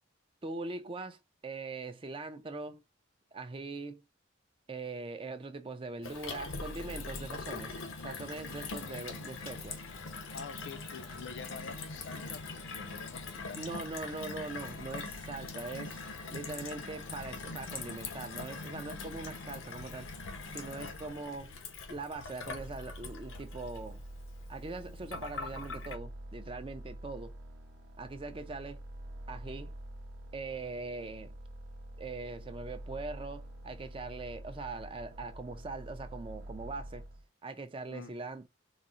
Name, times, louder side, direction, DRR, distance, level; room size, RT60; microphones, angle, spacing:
voice 1, 0.4-2.8 3.3-4.0 4.7-7.8 8.0-9.8 13.6-16.0 16.3-20.1 20.5-21.5 21.9-24.0 24.5-27.3 28.0-28.8 29.3-29.7 30.3-31.3 32.0-37.0 37.4-38.5, right 3 dB, 25° right, 0.4 m, -41 dB
Gurgling / Water tap faucet / Sink (filling or washing), 6.0-26.0, left 3 dB, 85° left, 0.7 m, -42 dB
voice 2, 10.3-13.6 37.9-38.1, left 5 dB, 60° left, 0.4 m, -47 dB
sound 1, 22.5-37.3, right 1 dB, 80° right, 0.7 m, -47 dB
3.9 x 2.0 x 2.4 m
head